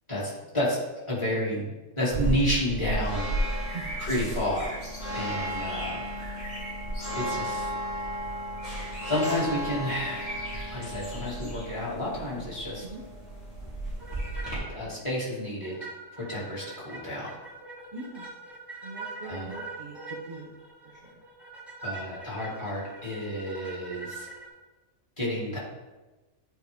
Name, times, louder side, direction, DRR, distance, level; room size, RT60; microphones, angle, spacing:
voice 1, 0.1-0.8 1.1-1.7 2.0-3.7 4.0-4.8 5.1-6.1 7.1-7.7 9.1-10.4 10.7-12.8 14.7-15.8 16.2-17.3 19.2-19.5 21.8-24.3 25.2-25.6, left 1 dB, 25° left, -6 dB, 2.4 m, -30 dB
sound 1, 2.1-14.6, right 1 dB, 75° left, 3.3 m, -33 dB
voice 2, 3.7-4.1 12.8-13.0 17.9-18.4 18.8-20.6 20.8-21.2, right 3 dB, 40° right, -2 dB, 0.9 m, -42 dB
sound 2, 14.0-14.7 15.0-15.1 15.6-24.5, right 3 dB, ahead, 1.3 m, -42 dB
10.5 x 4.8 x 3.5 m, 1.2 s
omnidirectional pair, 1.3 m